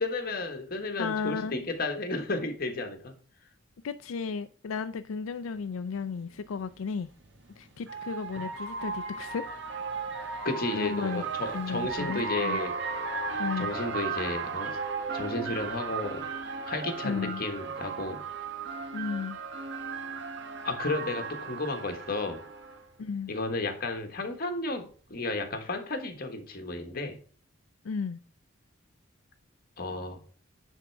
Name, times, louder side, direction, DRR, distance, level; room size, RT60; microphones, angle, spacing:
voice 1, 0.0-3.2 10.4-12.8 13.6-14.8 15.1-16.3 16.7-18.2 20.6-22.4 23.3-27.2 29.8-30.2, left 2 dB, 50° left, 1.4 m, -33 dB
voice 2, 1.0-1.5 3.8-7.1 7.6-9.5 10.1-10.5 10.7-11.2 11.5-12.6 13.4-13.7 17.0-17.4 18.9-19.4 23.0-23.3 27.8-28.2, left 5 dB, 90° left, 0.4 m, -34 dB
sound 1, 5.7-5.8 7.2-22.8, right 5 dB, 60° right, 1.1 m, -35 dB
9.9 x 3.6 x 4.5 m
head